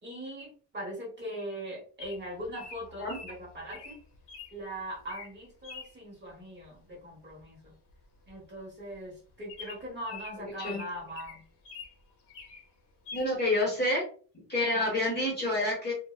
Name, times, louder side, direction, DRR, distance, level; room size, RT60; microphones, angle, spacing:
voice 1, 0.0-4.0 4.5-7.7 8.3-11.4, equal, 25° right, -3 dB, 1.0 m, -41 dB
Bird vocalization bird call bird song, 2.0-4.5 5.0-5.3 5.6-5.9 7.4-7.6 7.9-8.0 8.3-8.4 8.9-9.0 9.5-11.9 12.3-12.7 13.1-13.3, left 5 dB, 80° left, 0.9 m, -45 dB
voice 2, 13.1-14.0 14.3-15.9, left 1 dB, 25° left, -2 dB, 0.8 m, -28 dB
2.6 x 2.1 x 2.3 m, 0.40 s
cardioid pair, 160°, 41 cm